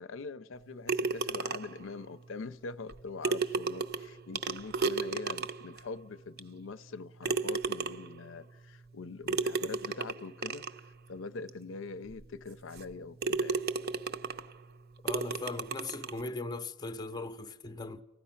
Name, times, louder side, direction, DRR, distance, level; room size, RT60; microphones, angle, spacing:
voice 1, 0.0-10.6 11.1-13.6, left 4 dB, 70° left, 0.5 m, -43 dB
sound 1, 0.9-1.8 2.9-3.0 3.2-5.8 6.4-6.5 7.2-8.2 9.3-10.8 11.5-11.6 12.1-12.2 12.7-12.9 13.2-14.5 15.1-16.2, right 4 dB, 55° right, 0.6 m, -33 dB
voice 2, 15.0-18.0, left 2 dB, 20° left, 0.5 m, -39 dB
30.0 x 15.5 x 5.7 m
head